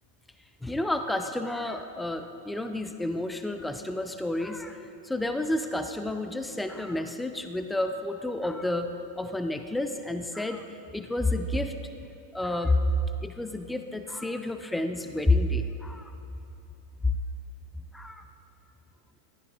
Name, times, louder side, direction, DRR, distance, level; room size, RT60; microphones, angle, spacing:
voice 1, 0.6-8.9 9.2-11.7 12.3-12.8 13.2-16.1 17.9-18.2, left 2 dB, 5° left, 8 dB, 0.5 m, -30 dB
20.5 x 14.5 x 2.4 m, 2.7 s
figure-of-eight pair, 90°, 0 cm